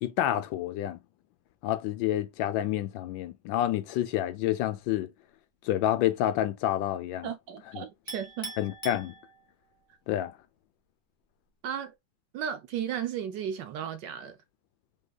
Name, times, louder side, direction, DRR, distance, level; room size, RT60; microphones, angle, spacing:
voice 1, 0.0-1.0 1.6-5.1 5.6-7.3 7.7-7.8 8.6-9.1 10.1-10.3, left 12 dB, 75° left, 1.2 m, -28 dB
voice 2, 7.2-8.5 11.6-11.9 12.3-14.4, right 9 dB, 70° right, 1.1 m, -35 dB
Chink clink, 8.1-9.7, right 2 dB, 5° left, 1.8 m, -42 dB
5.5 x 3.3 x 2.3 m
omnidirectional pair, 2.3 m